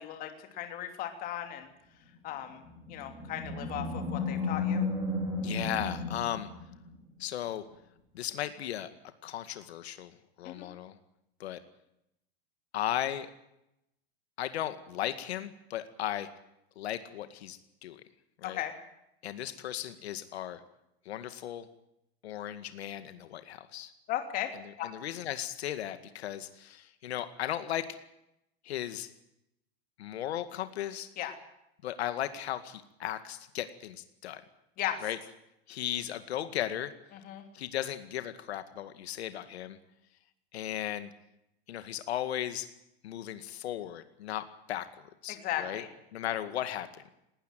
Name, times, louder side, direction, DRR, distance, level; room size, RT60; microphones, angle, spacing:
voice 1, 0.0-1.7 2.2-2.6 2.9-4.8 10.4-10.7 18.4-18.7 24.1-24.5 24.8-24.9 31.2-31.3 34.8-35.0 37.2-37.4 45.3-45.9, left 12 dB, 25° left, 5 dB, 3.1 m, -36 dB
Animal, 2.5-7.1, left 3 dB, 10° right, 5.2 m, -33 dB
voice 2, 5.4-6.5 7.2-7.6 8.1-8.9 9.2-10.1 10.4-11.0 11.4-11.6 12.7-13.3 14.4-16.3 16.8-18.0 18.4-18.6 19.2-20.6 21.1-21.7 22.2-23.9 24.8-28.0 28.6-29.1 30.0-31.1 31.8-34.4 35.0-35.2 35.7-36.9 37.5-39.8 40.5-41.1 41.7-42.7 43.0-45.8 46.1-47.1, left 12 dB, 80° left, 10 dB, 2.0 m, -36 dB
19.5 x 19.5 x 9.3 m, 0.83 s
supercardioid pair, 170°, 32 cm